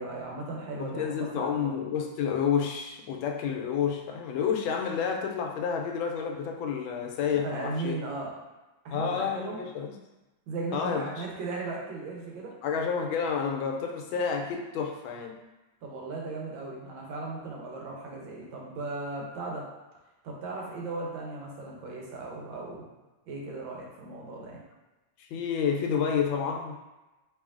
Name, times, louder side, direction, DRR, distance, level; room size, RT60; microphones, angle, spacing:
voice 1, 0.0-1.7 7.3-8.3 8.8-9.6 10.5-12.5 15.8-19.7 20.2-22.9 23.3-24.6, right 3 dB, 80° right, -2 dB, 1.5 m, -37 dB
voice 2, 0.8-7.9 8.9-9.9 10.7-11.2 12.6-15.4 25.2-26.8, left 7 dB, 85° left, 2 dB, 1.3 m, -30 dB
4.5 x 3.0 x 2.4 m, 1.1 s
omnidirectional pair, 2.1 m